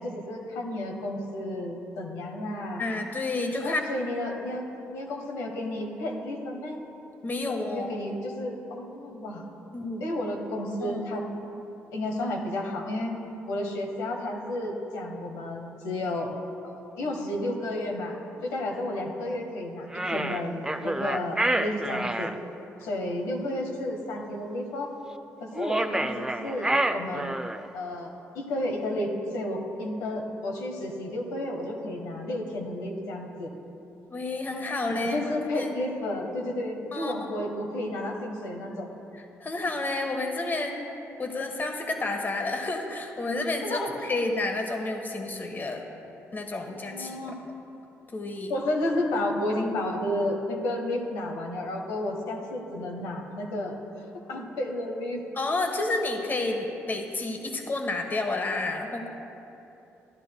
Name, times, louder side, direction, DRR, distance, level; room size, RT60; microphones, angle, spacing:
voice 1, 0.0-2.8 3.6-6.8 7.5-9.4 10.0-11.2 11.9-13.1 13.5-16.4 16.6-18.2 18.4-22.3 22.8-24.9 25.4-27.4 27.7-33.5 35.0-38.9 43.6-44.1 46.7-47.3 48.5-53.8 54.3-55.2, left 1 dB, 90° left, 1 dB, 1.1 m, -32 dB
voice 2, 2.8-3.8 7.2-7.9 9.7-10.0 10.8-11.0 34.1-35.8 36.9-37.3 39.1-40.8 41.2-45.9 46.3-47.2 48.1-48.5 55.4-59.1, left 2 dB, 35° left, 4 dB, 1.1 m, -30 dB
sound 1, 19.9-22.3 25.5-27.7, right 1 dB, 10° right, 0.4 m, -28 dB
14.5 x 11.0 x 2.2 m, 2.9 s
supercardioid pair, 70°, 6 cm